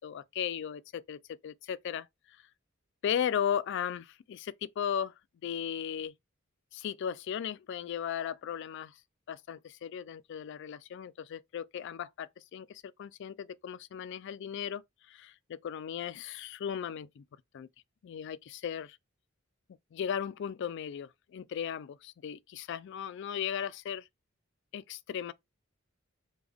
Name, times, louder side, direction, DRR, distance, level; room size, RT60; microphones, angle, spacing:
voice 1, 0.0-2.4 3.0-5.1 5.4-6.1 6.7-9.0 9.3-17.2 17.5-17.7 18.0-19.0 19.9-24.1 24.7-25.3, left 8 dB, 60° left, 0.3 m, -36 dB
3.4 x 2.2 x 3.4 m
head